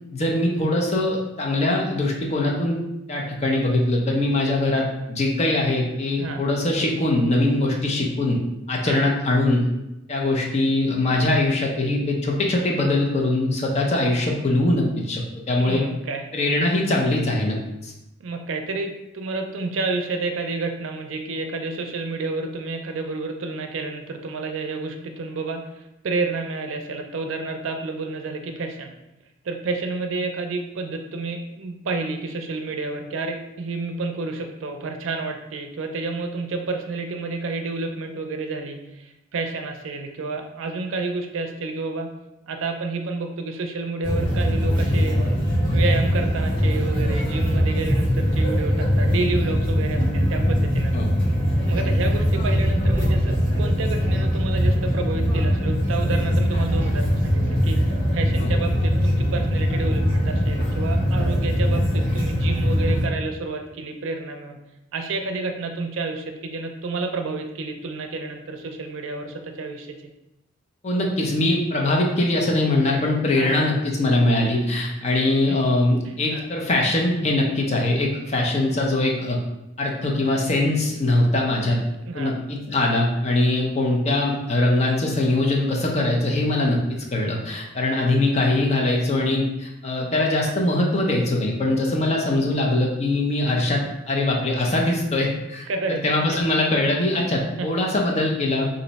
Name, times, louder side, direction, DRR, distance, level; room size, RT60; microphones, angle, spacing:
voice 1, 0.1-2.8 3.1-8.4 8.7-9.6 10.1-15.8 16.3-17.6 17.8-17.9 50.9-51.1 58.4-58.6 70.8-79.4 79.8-81.8 82.1-95.7 96.0-98.7, left 2 dB, 35° left, -1 dB, 0.5 m, -22 dB
voice 2, 15.6-16.3 18.2-28.9 29.4-42.1 42.5-45.2 45.7-50.9 51.7-64.6 64.9-70.0 73.3-73.5 75.5-75.6 76.0-76.4 82.0-82.3 95.7-96.0 96.3-96.4 97.2-97.7, right 3 dB, 85° right, 4 dB, 0.4 m, -30 dB
sound 1, 44.0-63.0, equal, 85° left, 1.3 m, -21 dB
2.6 x 2.1 x 3.9 m, 0.92 s
head